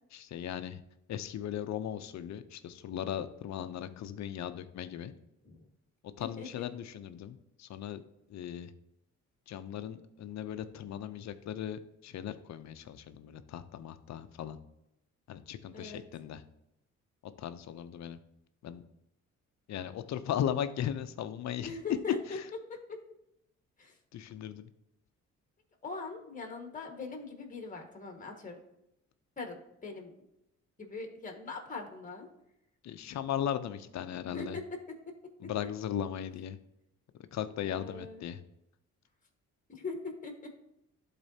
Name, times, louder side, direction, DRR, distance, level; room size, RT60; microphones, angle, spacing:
voice 1, 0.1-0.8 1.1-5.1 6.2-8.0 8.3-8.7 9.5-14.6 15.3-16.4 17.4-18.2 18.6-18.8 19.7-21.7 22.3-22.4 24.1-24.7 32.8-34.6 35.4-36.6 37.3-38.4, left 10 dB, 65° left, 11 dB, 0.6 m, -37 dB
voice 2, 6.2-6.7 15.7-16.0 21.6-22.4 22.7-23.0 23.8-24.0 25.8-28.6 29.4-30.1 30.8-32.3 34.3-34.8 35.4-35.5 37.7-38.3 39.7-40.5, left 3 dB, 25° left, 3 dB, 1.6 m, -41 dB
12.0 x 4.1 x 2.8 m, 0.86 s
cardioid pair, 90°, 30 cm